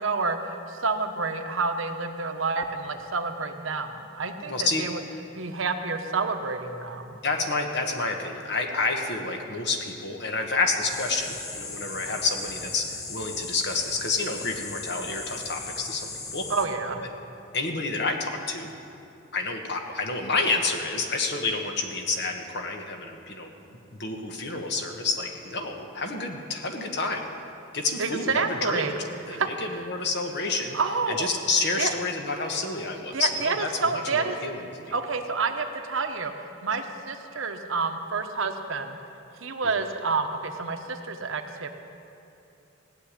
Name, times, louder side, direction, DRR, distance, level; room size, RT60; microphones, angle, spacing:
voice 1, 0.0-5.0 5.3-7.2 16.5-17.0 28.0-28.9 29.3-29.5 29.7-29.8 30.7-31.3 31.8-31.9 33.1-34.4 34.9-36.3 36.6-39.0 39.4-41.7, right 4 dB, 80° right, 6 dB, 1.0 m, -29 dB
voice 2, 4.5-4.8 7.2-16.5 17.0-17.1 17.5-18.7 19.3-23.5 23.9-27.3 27.7-30.8 31.1-34.9, left 3 dB, 55° left, 4 dB, 1.4 m, -29 dB
sound 1, 10.8-16.6, left 3 dB, 35° left, 1.4 m, -37 dB
16.5 x 6.9 x 10.0 m, 2.7 s
head